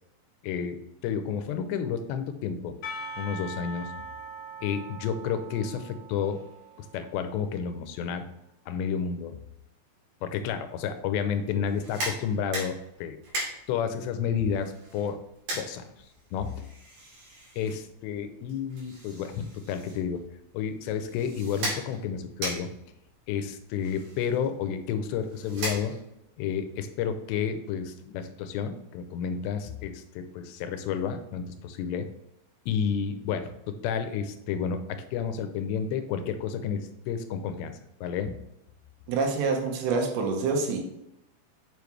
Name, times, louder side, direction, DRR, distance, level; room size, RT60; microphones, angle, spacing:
voice 1, 0.4-2.8 3.2-3.9 4.6-6.4 6.8-8.3 8.7-9.4 10.2-13.2 13.7-15.2 15.5-15.8 16.3-16.6 17.6-20.2 20.5-22.7 23.3-25.9 26.4-32.1 32.7-37.7 38.0-38.3, left 7 dB, 85° left, 9 dB, 2.9 m, -31 dB
Percussion / Church bell, 2.8-7.6, right 1 dB, 45° left, 2.2 m, -42 dB
sound 1, 11.6-26.3, right 1 dB, 50° right, 3.7 m, -39 dB
voice 2, 39.1-40.8, right 4 dB, 90° right, 2 dB, 3.4 m, -26 dB
7.1 x 7.0 x 3.2 m, 0.82 s
omnidirectional pair, 4.9 m